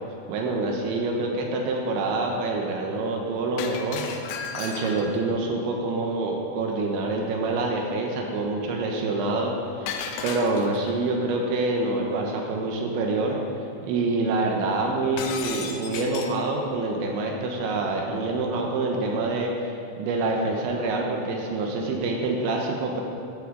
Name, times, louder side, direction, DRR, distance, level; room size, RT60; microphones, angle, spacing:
voice 1, 0.3-4.0 4.5-13.4 13.8-23.0, right 2 dB, 75° right, 1 dB, 3.2 m, -26 dB
Shatter, 3.6-5.2 9.9-10.9 15.2-16.4, left 6 dB, 75° left, 2.9 m, -34 dB
13.0 x 12.5 x 3.9 m, 2.5 s
omnidirectional pair, 5.6 m